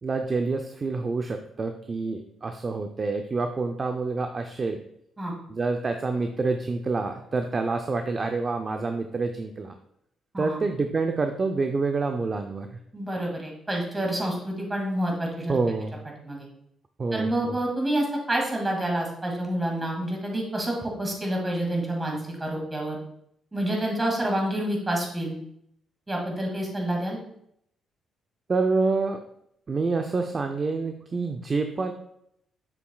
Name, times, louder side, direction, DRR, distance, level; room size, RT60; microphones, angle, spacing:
voice 1, 0.0-4.8 5.5-9.7 10.4-12.7 15.5-15.9 17.0-17.6 28.5-29.2 29.7-31.9, right 3 dB, 35° right, 5 dB, 0.5 m, -27 dB
voice 2, 12.9-15.6 16.2-16.5 17.1-23.0 23.5-25.4 26.1-27.2, right 1 dB, 20° right, 0 dB, 2.2 m, -28 dB
7.0 x 6.8 x 2.3 m, 0.73 s
cardioid pair, 90°, 0 cm